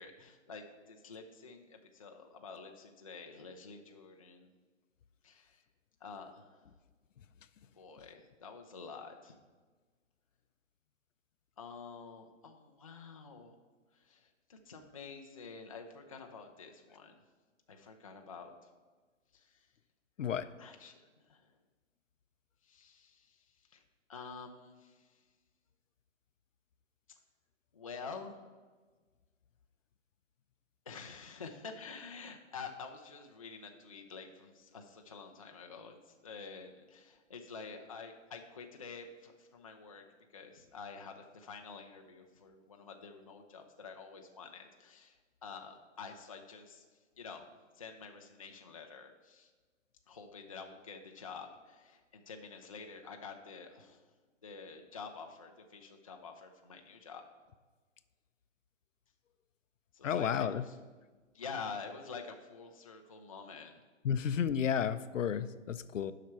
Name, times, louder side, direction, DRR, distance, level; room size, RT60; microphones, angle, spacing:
voice 1, 0.0-4.5 5.2-5.6 6.0-6.6 7.7-9.4 11.6-13.6 13.9-17.2 17.7-18.6 19.3-19.7 20.6-21.0 21.3-21.5 22.6-23.8 24.1-25.2 27.7-28.5 30.9-40.0 40.3-46.8 47.2-47.5 47.8-49.5 50.1-54.1 54.4-57.2 59.9-60.8 61.3-63.8, left 5 dB, 30° left, 3 dB, 0.4 m, -48 dB
voice 2, 60.0-60.6 64.0-66.1, left 8 dB, 75° left, 13 dB, 0.6 m, -32 dB
7.6 x 5.8 x 5.7 m, 1.4 s
hypercardioid pair, 155°, 39 cm